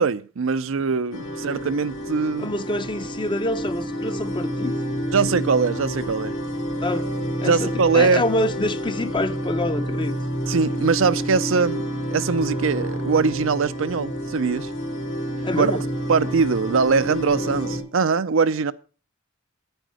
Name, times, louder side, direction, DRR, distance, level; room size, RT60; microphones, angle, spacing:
voice 1, 0.0-2.5 5.1-6.3 7.4-8.2 10.5-14.7 15.6-15.7 16.1-18.7, right 5 dB, 70° right, 0.6 m, -22 dB
sound 1, 1.1-17.8, equal, 75° left, 3.5 m, -29 dB
voice 2, 2.4-4.8 6.8-7.1 7.4-10.2 15.4-15.8, left 1 dB, 25° left, 0.7 m, -26 dB
9.1 x 9.1 x 6.2 m
head